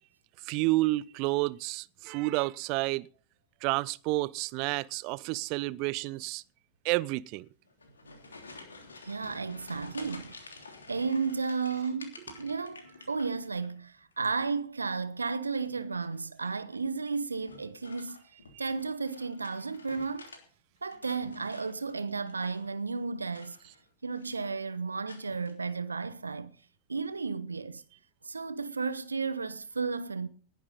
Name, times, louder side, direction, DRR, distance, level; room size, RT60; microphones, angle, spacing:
voice 1, 0.5-3.1 3.6-6.4 6.8-7.5, right 21 dB, 45° right, 0.7 m, -30 dB
sound 1, 7.7-13.7 14.0-14.6 16.0-16.4 17.4-20.4 20.8-22.8 23.3-23.9 24.1-24.6 25.1-25.5, left 3 dB, 75° left, 3.2 m, -50 dB
voice 2, 9.0-18.2 18.6-20.3 20.8-23.6 24.0-26.6 26.9-27.8 28.2-30.3, right 4 dB, 75° right, 0.9 m, -33 dB
19.5 x 10.5 x 3.9 m
figure-of-eight pair, 90°, 0 cm